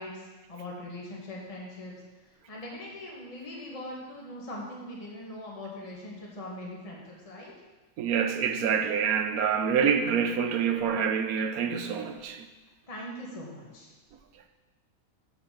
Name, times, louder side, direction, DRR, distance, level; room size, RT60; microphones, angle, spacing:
voice 1, 0.0-1.9 2.5-7.5 12.9-13.9, left 1 dB, 25° left, -3 dB, 1.7 m, -41 dB
voice 2, 8.0-12.5, right 7 dB, 85° right, 7 dB, 1.2 m, -26 dB
7.6 x 6.5 x 6.6 m, 1.2 s
omnidirectional pair, 1.5 m